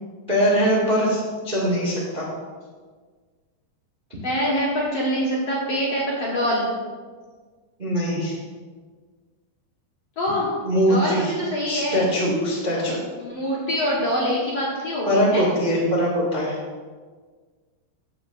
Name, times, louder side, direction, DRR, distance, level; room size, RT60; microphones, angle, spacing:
voice 1, 0.3-2.3 7.8-8.4 10.6-11.3 11.7-13.0 15.0-16.6, equal, 30° right, -6 dB, 0.8 m, -22 dB
voice 2, 4.2-6.7 10.2-10.5 10.9-12.0 12.9-15.4, equal, 55° left, -6 dB, 1.8 m, -25 dB
15.5 x 6.7 x 2.5 m, 1.5 s
omnidirectional pair, 4.7 m